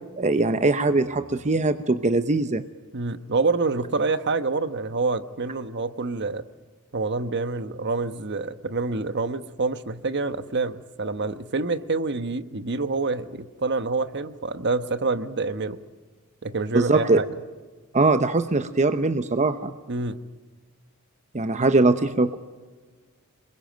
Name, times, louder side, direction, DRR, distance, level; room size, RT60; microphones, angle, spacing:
voice 1, 0.2-2.6 16.7-17.2 17.9-19.7 21.3-22.4, right 3 dB, 35° right, 10 dB, 0.8 m, -21 dB
voice 2, 2.9-6.4 6.9-15.8 16.4-17.3 19.9-20.2, right 3 dB, 55° right, 12 dB, 1.1 m, -27 dB
27.0 x 22.0 x 9.1 m, 1.4 s
head